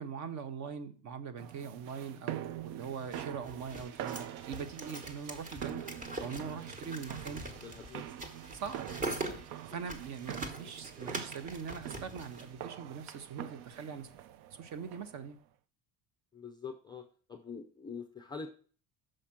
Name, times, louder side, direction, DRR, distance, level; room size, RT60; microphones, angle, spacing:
voice 1, 0.0-5.9 6.2-7.4 8.5-9.3 9.7-14.1 14.6-15.4, right 6 dB, 45° right, 0.8 m, -42 dB
sound 1, 1.4-15.3, right 11 dB, 70° right, 0.6 m, -45 dB
sound 2, 3.0-12.4, right 2 dB, 20° right, 1.1 m, -43 dB
voice 2, 7.5-8.1 9.7-9.8 10.6-10.7 16.3-17.0 17.3-18.5, left 5 dB, 10° left, 0.4 m, -45 dB
6.5 x 4.9 x 5.8 m
cardioid pair, 160°, 41 cm